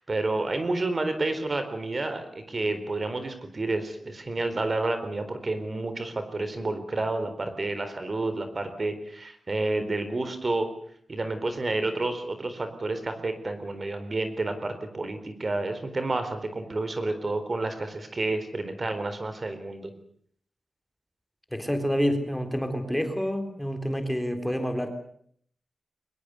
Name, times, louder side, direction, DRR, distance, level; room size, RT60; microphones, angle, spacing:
voice 1, 0.0-10.7 11.1-19.9, right 2 dB, 40° right, 9 dB, 4.0 m, -30 dB
voice 2, 21.5-24.9, equal, 5° left, 6 dB, 4.0 m, -28 dB
24.0 x 20.5 x 8.1 m, 0.63 s
wide cardioid pair, 95°, 0 cm